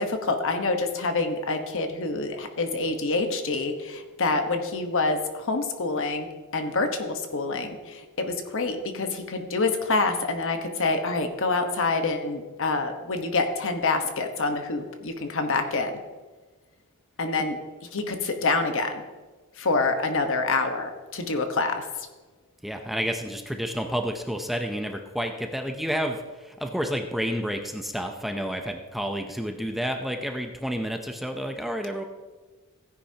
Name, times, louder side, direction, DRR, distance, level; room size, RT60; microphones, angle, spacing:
voice 1, 0.0-15.9 17.2-17.6 17.9-19.0 19.6-22.1, left 3 dB, 60° left, 6 dB, 1.2 m, -27 dB
voice 2, 22.6-32.0, equal, ahead, 4 dB, 0.6 m, -30 dB
16.0 x 9.9 x 2.9 m, 1.3 s
head